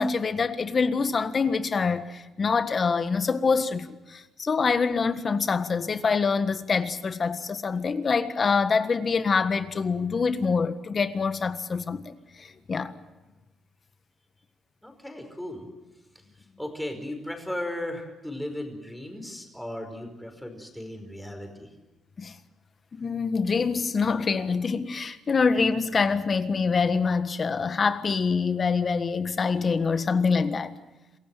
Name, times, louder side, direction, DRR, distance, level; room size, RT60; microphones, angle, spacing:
voice 1, 0.0-12.9 22.2-22.3 22.9-30.7, left 5 dB, 40° left, 1.6 m, -25 dB
voice 2, 14.8-15.7 16.6-21.7, left 1 dB, 5° left, 5.2 m, -36 dB
27.0 x 16.0 x 9.2 m
cardioid pair, 90°, 0 cm